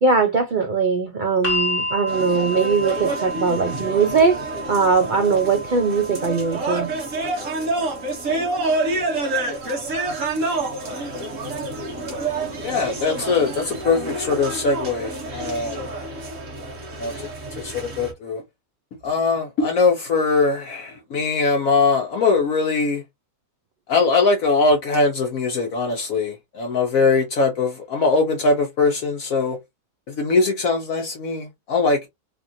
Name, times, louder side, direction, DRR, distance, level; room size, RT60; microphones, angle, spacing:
voice 1, 0.0-4.4 4.7-6.9, right 4 dB, 90° right, 0.4 m, -20 dB
sound 1, 1.4-13.5 14.6-14.7, equal, 25° left, 0.9 m, -33 dB
sound 2, 2.1-18.1, right 2 dB, 60° right, 1.4 m, -28 dB
voice 2, 12.6-15.8 17.0-18.4 19.0-23.0 23.9-29.6 30.1-32.1, left 4 dB, 70° left, 1.1 m, -21 dB
3.4 x 2.4 x 2.6 m
omnidirectional pair, 1.6 m